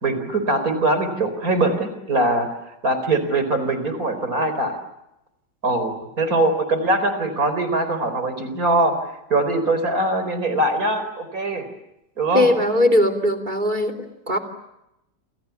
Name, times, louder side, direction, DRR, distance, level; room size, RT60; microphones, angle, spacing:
voice 1, 0.0-2.5 2.8-4.7 5.6-8.9 9.3-11.6 12.2-12.5, right 2 dB, 50° right, 10 dB, 4.8 m, -22 dB
voice 2, 12.3-13.9 14.3-14.4, left 1 dB, 25° right, 10 dB, 3.1 m, -19 dB
29.0 x 28.0 x 7.1 m, 0.87 s
omnidirectional pair, 1.9 m